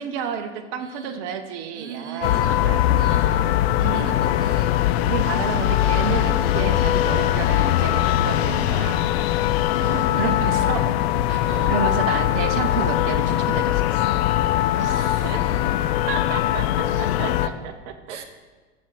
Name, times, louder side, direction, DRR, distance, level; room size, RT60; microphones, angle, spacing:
voice 1, 0.0-2.3 2.6-2.8 3.8-4.1 5.0-9.0 9.8-11.0 11.3-14.2 15.2-15.4 16.1-18.2, right 7 dB, 55° right, 7 dB, 1.0 m, -30 dB
voice 2, 0.8-1.2 1.7-3.5 3.8-4.8 8.5-9.1 9.7-10.8 11.4-11.7 14.7-15.4 18.1-18.2, right 6 dB, 80° right, 7 dB, 1.0 m, -38 dB
sound 1, 2.2-17.5, left 13 dB, 60° left, 0.6 m, -21 dB
14.0 x 5.3 x 6.0 m, 1.3 s
figure-of-eight pair, 75°, 35 cm